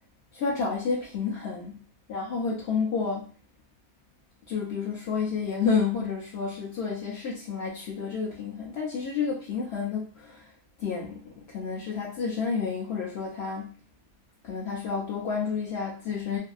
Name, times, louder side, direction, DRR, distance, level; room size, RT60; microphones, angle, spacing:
voice 1, 0.3-1.8 2.1-3.3 4.5-10.5 10.8-13.8 14.4-16.4, left 5 dB, 70° left, -4 dB, 0.9 m, -30 dB
2.7 x 2.6 x 2.4 m, 0.38 s
omnidirectional pair, 1.1 m